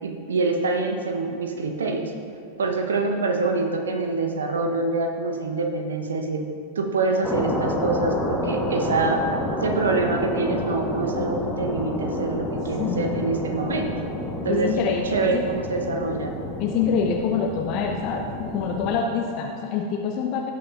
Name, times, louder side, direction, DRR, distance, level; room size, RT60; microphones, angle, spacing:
voice 1, 0.0-2.1 2.6-6.4 6.8-9.2 9.6-13.9 14.4-14.7 15.0-16.3, right 3 dB, 70° right, 4 dB, 0.9 m, -25 dB
sound 1, 7.2-19.0, left 1 dB, 5° left, 1.2 m, -29 dB
voice 2, 12.8-13.3 14.5-15.0 15.3-15.5 16.6-20.5, left 6 dB, 40° left, 2 dB, 0.6 m, -25 dB
17.0 x 5.9 x 2.5 m, 2.5 s
figure-of-eight pair, 90°, 0 cm